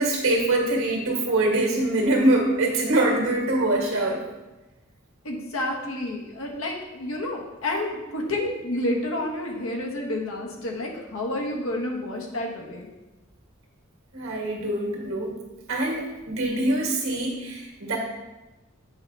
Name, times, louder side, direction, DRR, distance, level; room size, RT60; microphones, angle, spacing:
voice 1, 0.0-4.2 14.1-15.4 15.7-18.0, right 2 dB, 80° right, -1 dB, 1.8 m, -24 dB
voice 2, 5.2-12.9, left 1 dB, 90° left, 0 dB, 1.3 m, -30 dB
8.1 x 5.4 x 3.3 m, 1.1 s
head